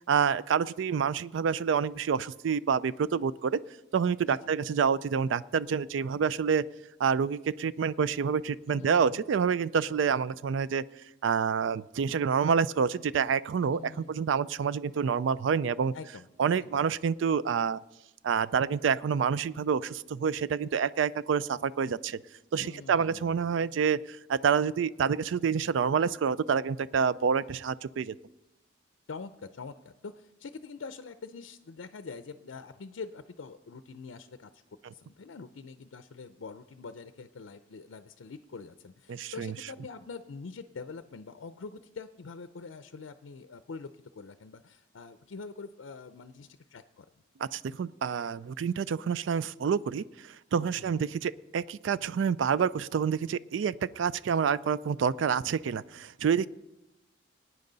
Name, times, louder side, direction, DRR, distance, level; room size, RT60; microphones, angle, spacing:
voice 1, 0.0-3.6 3.9-6.6 7.0-10.8 11.2-15.9 16.4-17.8 18.2-22.2 22.5-28.1 39.1-39.5 47.4-50.0 50.5-56.5, right 6 dB, 80° right, 18 dB, 0.4 m, -28 dB
voice 2, 8.7-9.2 13.6-14.3 15.9-16.3 16.6-16.9 22.6-23.8 29.1-34.6 34.9-47.1 50.8-51.1, left 4 dB, 90° left, 10 dB, 0.5 m, -45 dB
20.0 x 9.5 x 3.9 m, 0.97 s
head